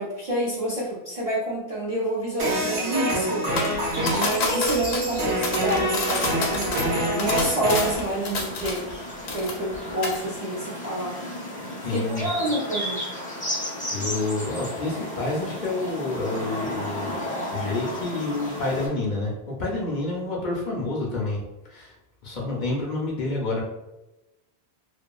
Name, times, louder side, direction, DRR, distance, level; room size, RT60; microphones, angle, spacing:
voice 1, 0.0-3.5 4.1-9.0 9.3-11.2 11.9-13.1, right 1 dB, 50° right, -5 dB, 0.5 m, -28 dB
sound 1, 2.4-8.0, right 1 dB, 85° right, 1.2 m, -26 dB
sound 2, 3.6-9.0 9.3-9.7 10.0-10.2, left 3 dB, 85° left, 0.9 m, -29 dB
sound 3, 3.9-18.9, left 1 dB, 10° left, 0.7 m, -34 dB
voice 2, 11.8-12.3 13.9-17.2 17.5-21.4 21.7-21.9 22.2-23.6, left 2 dB, 55° left, -3 dB, 0.6 m, -28 dB
2.6 x 2.4 x 2.2 m, 0.98 s
omnidirectional pair, 1.1 m